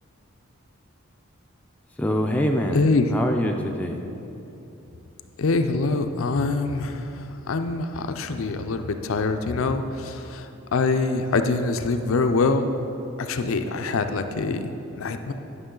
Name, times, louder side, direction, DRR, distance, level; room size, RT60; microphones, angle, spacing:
voice 1, 2.0-4.0, equal, 5° left, 2 dB, 0.3 m, -25 dB
voice 2, 2.7-3.1 5.4-7.0 7.5-12.7 13.2-15.3, left 3 dB, 70° left, 7 dB, 0.5 m, -24 dB
11.0 x 6.1 x 3.8 m, 3.0 s
head